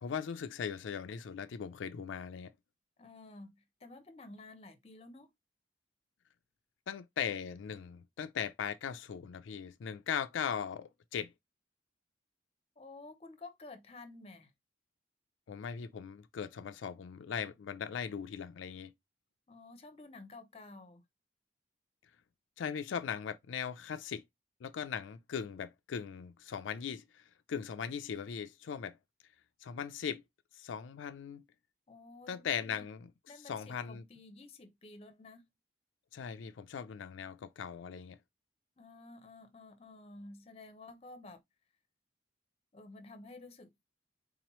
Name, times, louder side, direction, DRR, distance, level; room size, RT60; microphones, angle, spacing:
voice 1, 0.0-2.5 6.9-11.3 15.5-18.9 22.6-24.2 24.6-29.0 29.6-30.2 30.5-31.4 32.3-33.1 33.4-34.0 36.1-38.2, left 7 dB, 85° left, 0.4 m, -39 dB
voice 2, 3.0-5.3 12.8-14.5 19.5-21.0 31.9-32.8 33.3-35.4 38.8-41.4 42.7-43.7, left 2 dB, 30° left, 0.6 m, -52 dB
3.9 x 3.0 x 3.0 m
head